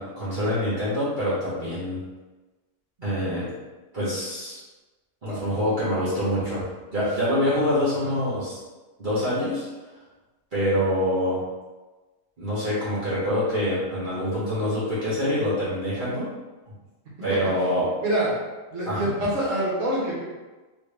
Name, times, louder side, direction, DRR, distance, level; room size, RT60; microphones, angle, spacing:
voice 1, 0.0-2.0 3.0-3.5 3.9-4.6 5.2-6.6 6.9-8.6 9.0-9.6 10.5-11.4 12.4-16.3 17.2-17.9 18.9-19.1, equal, 40° right, -11 dB, 1.3 m, -25 dB
voice 2, 18.0-18.3 18.7-20.2, right 1 dB, 70° right, -5 dB, 1.4 m, -25 dB
3.2 x 2.7 x 3.3 m, 1.2 s
omnidirectional pair, 1.4 m